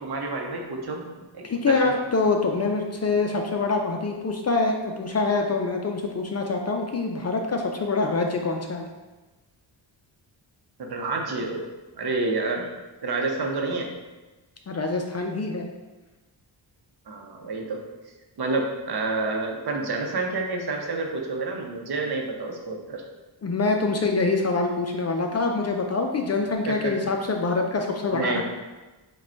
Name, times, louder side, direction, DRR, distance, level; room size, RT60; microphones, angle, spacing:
voice 1, 0.0-1.8 10.8-11.6 12.0-12.7 13.0-13.9 17.1-17.8 18.4-23.0 26.7-27.1 28.1-28.4, right 3 dB, 55° right, 1 dB, 0.8 m, -29 dB
voice 2, 1.4-8.9 14.7-15.7 23.4-28.4, left 3 dB, 35° left, 3 dB, 0.4 m, -25 dB
4.9 x 2.3 x 4.4 m, 1.2 s
wide cardioid pair, 105°, 46 cm